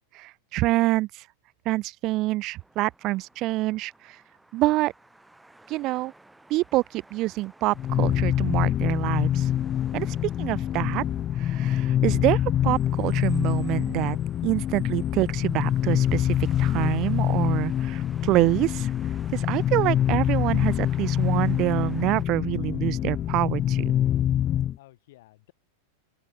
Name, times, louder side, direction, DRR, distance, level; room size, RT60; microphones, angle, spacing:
voice 1, 0.1-1.3 1.7-4.2 4.5-4.9 5.7-6.1 6.5-9.5 9.9-11.0 11.3-14.2 14.4-18.9 19.3-23.9, right 18 dB, 40° right, 0.3 m, -26 dB
sound 1, 2.6-22.2, right 2 dB, 5° right, 7.0 m, -54 dB
sound 2, 7.8-24.8, left 11 dB, 30° left, 0.4 m, -25 dB
voice 2, 24.8-25.5, left 17 dB, 55° left, 6.3 m, -55 dB
open air
figure-of-eight pair, 90°, 0 cm